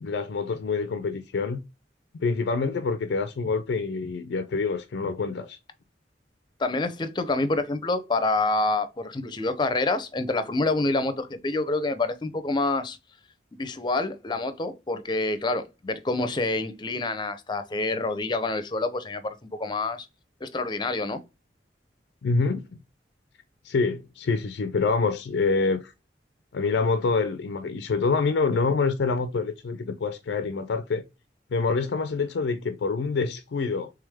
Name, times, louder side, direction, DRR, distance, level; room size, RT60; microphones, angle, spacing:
voice 1, 0.0-1.6 2.2-5.6 22.2-22.8 23.6-25.9 26.5-31.0 31.5-33.9, left 4 dB, 85° left, 0.4 m, -26 dB
voice 2, 6.6-13.0 13.5-20.1 20.4-21.2, left 2 dB, 25° left, 0.5 m, -27 dB
3.4 x 3.3 x 3.4 m
head